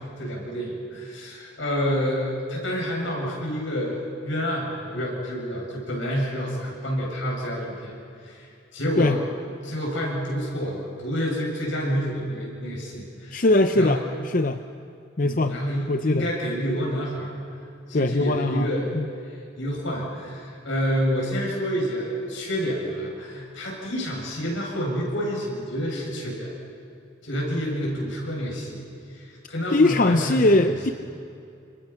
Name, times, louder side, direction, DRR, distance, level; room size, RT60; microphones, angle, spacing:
voice 1, 0.2-7.9 8.2-9.2 9.6-13.5 13.7-14.0 15.2-17.4 17.9-18.9 19.3-26.5 27.2-28.8 29.1-30.7, equal, 80° left, -2 dB, 7.8 m, -28 dB
voice 2, 13.3-14.6 15.2-15.6 15.9-16.3 17.9-18.7 18.9-19.1 29.7-30.9, left 2 dB, 45° left, 8 dB, 0.6 m, -21 dB
29.0 x 26.0 x 5.9 m, 2.5 s
head